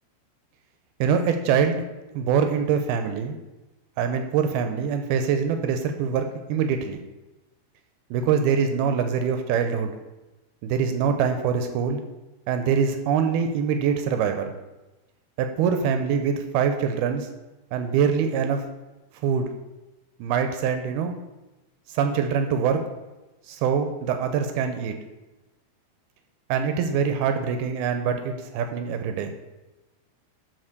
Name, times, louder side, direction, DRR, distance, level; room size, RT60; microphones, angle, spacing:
voice 1, 1.0-1.8 2.1-3.4 4.0-7.0 8.1-9.9 10.6-12.0 12.5-14.6 15.4-17.3 17.7-18.6 19.2-19.5 20.2-21.1 21.9-22.8 23.5-24.9 26.5-29.3, right 7 dB, 80° right, 7 dB, 2.3 m, -24 dB
12.0 x 4.2 x 6.5 m, 1.1 s
omnidirectional pair, 5.1 m